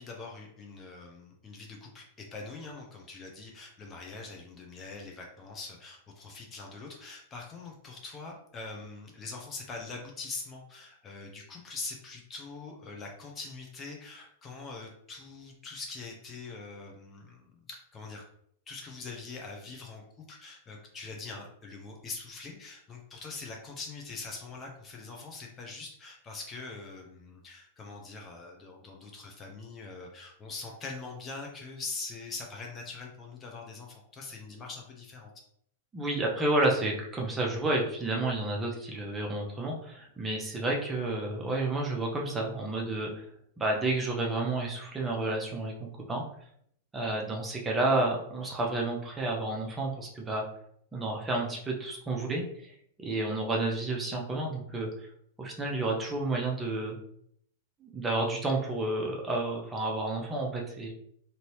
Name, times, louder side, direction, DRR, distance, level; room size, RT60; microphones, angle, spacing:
voice 1, 0.0-18.2 18.7-35.3, left 3 dB, 20° left, 0 dB, 0.6 m, -43 dB
voice 2, 35.9-43.2 43.6-46.2 46.9-50.4 50.9-52.4 53.0-54.9 55.4-57.0 57.8-60.9, right 2 dB, 15° right, -1 dB, 0.7 m, -30 dB
2.7 x 2.7 x 3.0 m, 0.68 s
figure-of-eight pair, 95°, 0 cm